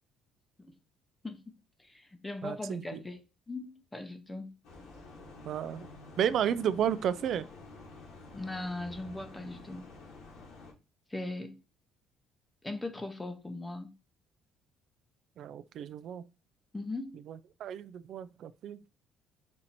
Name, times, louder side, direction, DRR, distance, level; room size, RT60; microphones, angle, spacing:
voice 1, 1.8-3.2 3.5-4.5 8.3-9.9 11.1-11.6 12.6-13.9 16.7-17.2, left 2 dB, 10° left, 0.7 m, -39 dB
voice 2, 2.4-3.0 5.5-5.9 6.2-7.4 15.4-16.2 17.3-18.8, right 9 dB, 60° right, 0.4 m, -32 dB
sound 1, 4.6-10.7, left 2 dB, 80° left, 1.5 m, -50 dB
4.4 x 2.6 x 4.2 m
cardioid pair, 120°, 0 cm